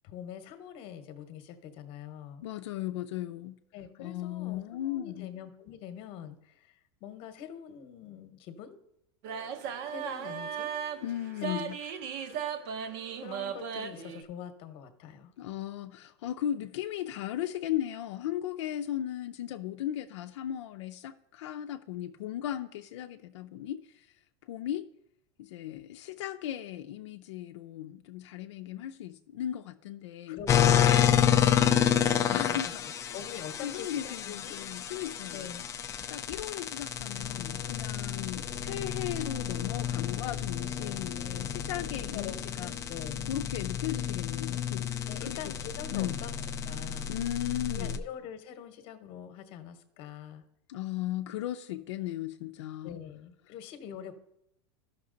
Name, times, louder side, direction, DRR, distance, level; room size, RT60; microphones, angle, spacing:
voice 1, 0.0-2.4 3.7-8.8 9.9-10.7 11.4-11.6 11.9-12.0 12.3-12.4 13.2-15.3 30.3-34.6 35.3-35.6 42.1-43.3 45.1-47.2 47.7-50.4 52.8-54.1, left 9 dB, 40° left, 1.0 m, -44 dB
voice 2, 2.4-3.6 4.0-5.3 11.0-11.8 15.4-24.2 24.5-24.9 25.4-30.4 31.0-31.4 32.3-33.2 33.6-35.5 36.1-42.7 43.3-45.5 45.9-46.2 47.1-48.0 50.7-53.0, left 12 dB, 80° left, 0.5 m, -36 dB
sound 1, 9.2-14.2, right 8 dB, 55° right, 0.9 m, -37 dB
sound 2, 30.5-48.0, left 9 dB, 20° left, 0.5 m, -30 dB
13.0 x 5.9 x 3.9 m
supercardioid pair, 155°, 15 cm